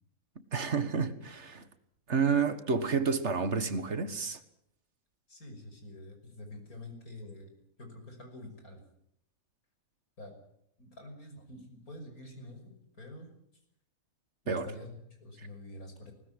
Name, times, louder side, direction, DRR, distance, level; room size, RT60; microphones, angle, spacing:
voice 1, 0.5-1.7 2.1-4.4 14.5-14.7 15.4-15.5, right 5 dB, 50° right, 1.8 m, -30 dB
voice 2, 5.3-7.5 7.8-8.8 10.2-10.4 10.8-13.3 14.4-14.9 15.2-16.1, left 1 dB, 85° left, 6.2 m, -47 dB
20.5 x 19.5 x 9.6 m
omnidirectional pair, 1.5 m